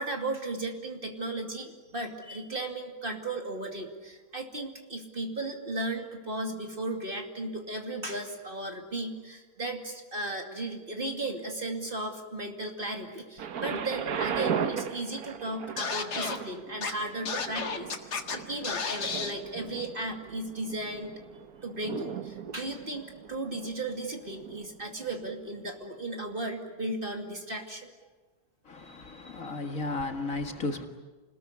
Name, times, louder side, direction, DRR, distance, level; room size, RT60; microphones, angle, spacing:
voice 1, 0.0-21.1 21.6-27.9 28.8-29.5, right 2 dB, 30° right, 3 dB, 2.7 m, -36 dB
Thunder, 13.4-25.2 26.0-26.1, right 7 dB, 65° right, 1.5 m, -37 dB
Scratching (performance technique), 15.8-16.4 16.8-16.9 17.3-18.4 18.6-19.3, left 5 dB, 70° left, 2.3 m, -32 dB
voice 2, 28.7-30.9, left 3 dB, 50° left, 5 dB, 2.2 m, -34 dB
29.0 x 20.5 x 9.8 m, 1.3 s
omnidirectional pair, 1.8 m